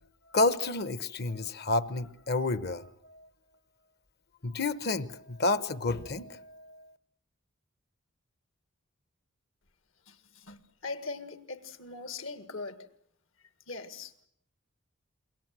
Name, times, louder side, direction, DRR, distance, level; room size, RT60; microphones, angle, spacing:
voice 1, 0.3-3.3 4.4-6.9, left 3 dB, 50° left, 1.1 m, -30 dB
voice 2, 10.1-12.8 13.7-14.1, left 3 dB, 70° left, 2.0 m, -41 dB
28.0 x 23.0 x 7.6 m
head